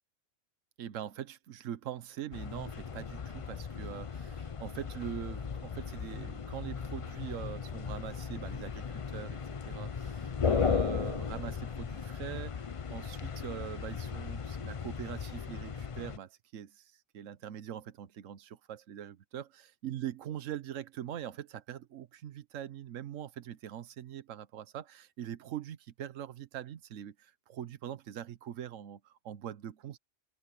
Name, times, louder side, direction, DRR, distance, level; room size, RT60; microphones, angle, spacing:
voice 1, 0.8-30.0, right 10 dB, 85° right, 1.2 m, -43 dB
sound 1, 2.3-16.2, left 6 dB, 35° left, 0.6 m, -36 dB
omnidirectional pair, 1.3 m